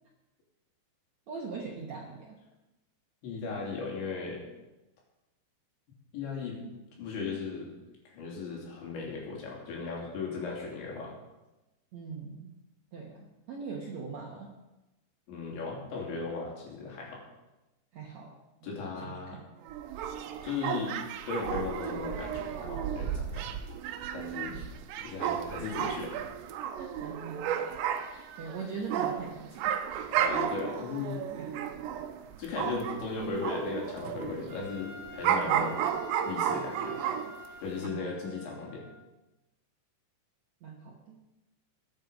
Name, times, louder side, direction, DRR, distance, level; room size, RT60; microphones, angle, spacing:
voice 1, 1.3-2.4 11.9-12.5 12.9-14.5 17.9-18.3 18.6-19.5 24.5-24.7 26.8-27.7 28.1-29.8 31.3-31.6 35.2-35.7 37.8-38.1 40.6-41.2, right 5 dB, 65° right, -1 dB, 1.8 m, -41 dB
voice 2, 3.2-4.4 6.1-6.6 7.0-7.7 8.1-11.2 15.3-17.2 18.6-19.4 20.4-21.0 21.3-23.5 24.1-24.6 25.0-26.1 30.1-31.3 32.4-35.8 36.3-37.0 37.6-38.9, left 4 dB, 80° left, -2 dB, 5.5 m, -36 dB
sound 1, 19.7-33.1 33.4-37.5 37.8-37.9, right 9 dB, 85° right, 3.0 m, -33 dB
Trumpet, 34.5-39.1, left 3 dB, 15° left, 2.8 m, -48 dB
20.5 x 8.6 x 5.2 m, 1.0 s
omnidirectional pair, 5.1 m